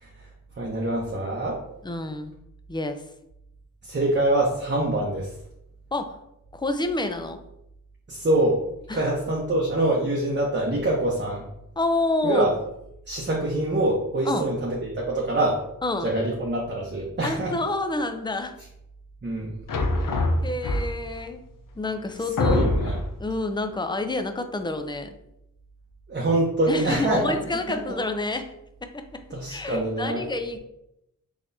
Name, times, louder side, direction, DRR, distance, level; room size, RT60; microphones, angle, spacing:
voice 1, 0.6-1.6 3.8-5.3 8.1-8.6 8.9-11.4 12.2-12.5 13.1-15.6 16.0-17.6 19.2-19.5 22.4-23.0 26.1-28.0 29.3-30.3, right 1 dB, 35° right, -2 dB, 0.7 m, -25 dB
voice 2, 1.8-2.3 2.7-3.0 5.9-6.2 6.5-7.4 8.9-9.0 11.8-12.5 14.3-14.4 15.8-16.1 17.2-18.6 20.4-21.4 21.8-22.6 23.2-25.1 26.7-28.5 28.8-29.2 29.5-30.6, left 2 dB, 15° left, 7 dB, 0.4 m, -28 dB
sound 1, 19.7-21.2 21.8-21.9 22.4-23.2, left 2 dB, 70° left, 0.6 m, -24 dB
3.9 x 2.9 x 2.6 m, 0.83 s
cardioid pair, 45°, 34 cm